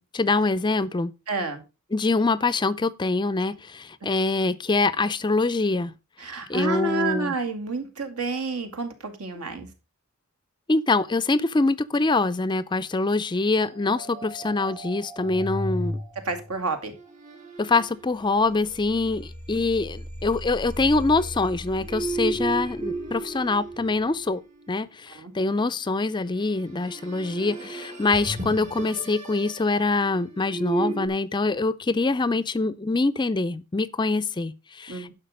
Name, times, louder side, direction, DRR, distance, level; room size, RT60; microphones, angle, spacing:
voice 1, 0.0-1.1 1.9-5.9 6.5-7.4 10.7-16.0 17.6-24.4 24.7-35.1, left 3 dB, 20° left, 0.4 m, -24 dB
voice 2, 1.3-1.6 6.2-9.7 16.3-16.9 25.1-25.3 34.9-35.1, right 3 dB, 80° right, 2.3 m, -29 dB
sound 1, 13.6-24.8 26.3-31.1, right 2 dB, 30° right, 2.8 m, -35 dB
11.0 x 5.9 x 5.1 m
head